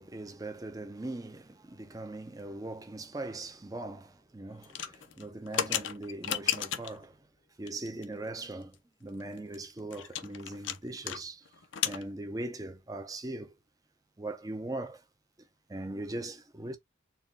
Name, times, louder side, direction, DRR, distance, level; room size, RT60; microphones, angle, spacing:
voice 1, 0.0-7.2 7.6-8.8 9.0-11.4 11.8-13.5 14.2-15.0 15.7-16.8, right 2 dB, 20° right, 0.6 m, -40 dB
sound 1, 4.6-7.0 7.7-8.0 8.4-8.5 8.7-8.8 9.2-11.2 11.5-12.0, left 10 dB, 75° left, 0.5 m, -34 dB
4.1 x 2.2 x 3.4 m
head